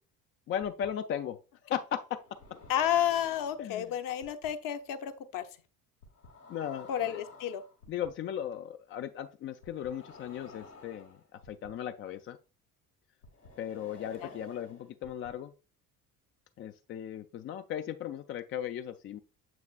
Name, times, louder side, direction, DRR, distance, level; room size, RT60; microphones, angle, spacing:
voice 1, 0.5-1.4 1.6-2.2 3.6-3.9 6.5-7.2 7.9-12.4 13.6-15.5 16.6-19.2, left 9 dB, 30° left, 9 dB, 0.4 m, -37 dB
sound 1, 0.6-0.9 2.2-3.7 4.2-4.5 6.0-8.1 9.6-11.7 13.2-15.3, left 3 dB, 85° left, 1.6 m, -52 dB
voice 2, 2.7-5.5 6.9-7.6 14.2-14.3, left 10 dB, 45° left, 10 dB, 0.8 m, -31 dB
7.1 x 6.1 x 2.3 m, 0.33 s
figure-of-eight pair, 50°, 45 cm